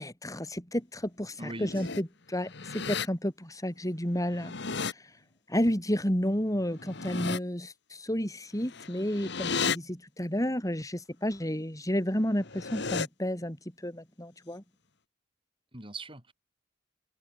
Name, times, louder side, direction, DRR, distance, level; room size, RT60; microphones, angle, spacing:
voice 1, 0.0-4.5 4.8-5.1 5.5-14.6, equal, 20° left, 5.6 m, -31 dB
sound 1, 1.4-2.0 2.4-3.1 4.2-4.9 6.7-7.4 8.6-9.8 12.3-13.1, left 5 dB, 60° left, 1.8 m, -34 dB
voice 2, 1.4-1.9 15.7-16.3, right 2 dB, 25° right, 7.7 m, -41 dB
head